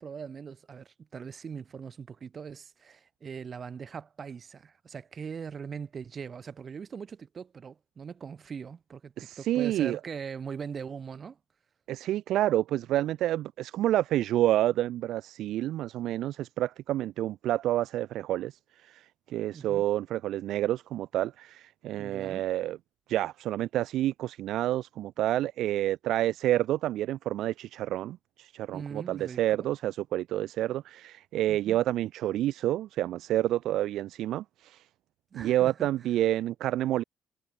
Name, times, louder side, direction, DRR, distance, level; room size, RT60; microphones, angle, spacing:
voice 1, 0.0-11.4 19.5-19.8 22.0-22.5 28.7-29.7 31.5-31.8 35.3-36.1, right 6 dB, 45° right, 1.6 m, -41 dB
voice 2, 9.2-10.0 11.9-22.8 23.1-34.9 35.3-37.0, right 13 dB, 85° right, 0.4 m, -29 dB
cardioid pair, 90°, 0 cm